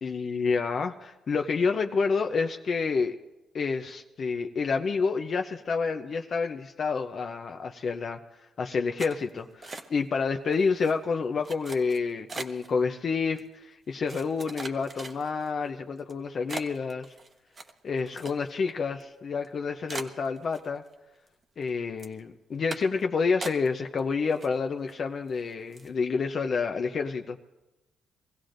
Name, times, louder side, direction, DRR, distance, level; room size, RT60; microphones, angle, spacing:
voice 1, 0.0-3.2 3.5-8.2 8.6-17.1 17.8-20.8 21.6-27.4, left 5 dB, 50° left, 4 dB, 0.6 m, -29 dB
sound 1, 9.0-10.2 10.5-10.9 11.4-12.7 13.4-13.5 14.1-15.5 16.0-16.1 16.5-18.7 19.0-19.1 19.4-19.5 19.9-20.9 21.3-21.7 22.0-22.2 22.7-23.0 23.4-24.0 24.3-24.9 25.3-25.4 25.7-26.0, right 3 dB, 35° right, 1.0 m, -40 dB
23.5 x 16.0 x 2.6 m, 1.0 s
cardioid pair, 90°, 0 cm